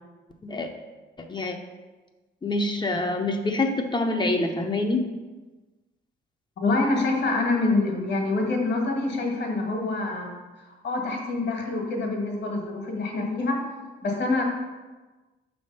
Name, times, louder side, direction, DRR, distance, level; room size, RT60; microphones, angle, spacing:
voice 1, 1.2-1.6 2.4-5.1, left 2 dB, 25° left, 4 dB, 0.7 m, -26 dB
voice 2, 6.6-10.3 10.8-13.6 14.0-14.4, left 3 dB, 60° left, 1 dB, 1.6 m, -26 dB
5.9 x 3.4 x 5.4 m, 1.2 s
cardioid pair, 90°, 20 cm